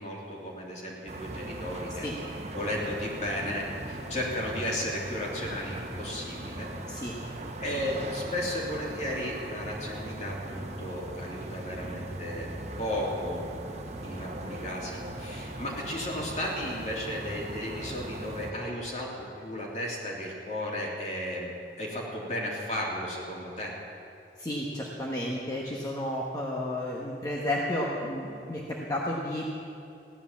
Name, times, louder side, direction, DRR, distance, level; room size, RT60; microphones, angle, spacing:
voice 1, 0.0-2.1 2.5-7.1 7.6-12.5 12.8-13.4 14.0-21.5 21.8-23.7, left 1 dB, 40° left, -3 dB, 3.0 m, -34 dB
sound 1, 1.1-18.5, right 1 dB, 40° right, 1.2 m, -39 dB
voice 2, 24.4-29.4, left 1 dB, 20° left, -4 dB, 1.2 m, -32 dB
16.0 x 11.0 x 7.3 m, 2.6 s
head